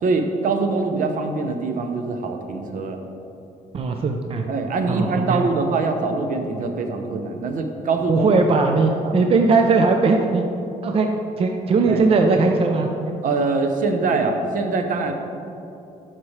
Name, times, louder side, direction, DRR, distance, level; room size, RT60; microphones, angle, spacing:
voice 1, 0.0-3.0 4.5-8.3 9.0-9.1 11.9-12.0 13.2-15.1, right 3 dB, 65° right, 5 dB, 0.9 m, -23 dB
voice 2, 3.7-4.4 4.9-5.4 8.1-10.4 10.8-11.1 11.4-12.9, right 3 dB, 40° right, 3 dB, 0.6 m, -19 dB
12.0 x 5.9 x 3.3 m, 2.8 s
cardioid pair, 110°, 15 cm